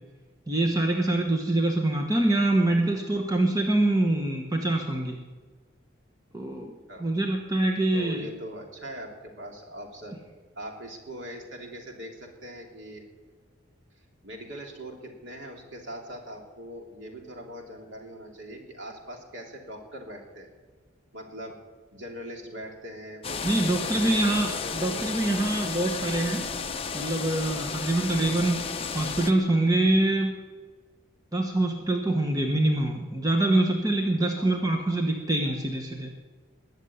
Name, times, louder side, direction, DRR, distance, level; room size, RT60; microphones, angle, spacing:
voice 1, 0.5-5.2 6.3-6.7 7.0-8.3 23.4-26.5 26.9-28.6 28.9-30.3 31.3-36.1, right 2 dB, 15° right, 2 dB, 1.2 m, -25 dB
voice 2, 7.9-10.2 10.5-13.0 14.2-20.5 21.1-21.6 21.9-25.1 34.4-34.6 35.4-35.5, equal, 60° right, 1 dB, 3.1 m, -41 dB
sound 1, 23.2-29.3, left 5 dB, 25° left, 0.9 m, -33 dB
20.5 x 7.3 x 9.5 m, 1.4 s
head